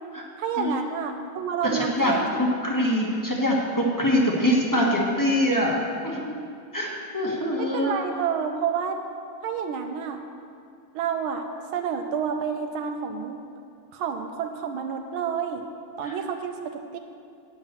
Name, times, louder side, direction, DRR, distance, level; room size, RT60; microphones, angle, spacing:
voice 1, 0.4-2.6 7.6-9.0 9.4-10.2 10.9-11.5 11.7-13.4 13.9-15.7 16.0-17.0, right 7 dB, 80° right, 5 dB, 1.4 m, -29 dB
voice 2, 1.6-5.8 6.0-6.4 6.7-8.0 16.0-16.2, left 1 dB, 10° left, -3 dB, 1.0 m, -24 dB
9.8 x 5.6 x 8.1 m, 2.3 s
omnidirectional pair, 2.2 m